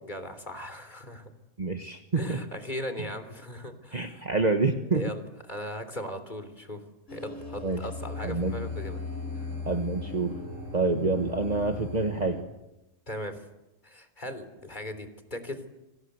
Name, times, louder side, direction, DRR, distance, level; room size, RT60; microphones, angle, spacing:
voice 1, 0.0-1.3 2.1-4.3 4.9-5.2 5.5-6.8 7.1-9.0 9.4-9.5 13.1-13.4 13.8-15.6, left 1 dB, 35° left, 10 dB, 3.6 m, -38 dB
voice 2, 1.6-2.4 3.9-5.1 7.6-7.8 8.2-8.6 9.7-10.4 10.7-12.4, right 3 dB, 35° right, 5 dB, 1.6 m, -27 dB
sound 1, 7.1-12.4, left 3 dB, 80° left, 6.3 m, -37 dB
29.5 x 25.0 x 8.1 m, 0.95 s
omnidirectional pair, 1.3 m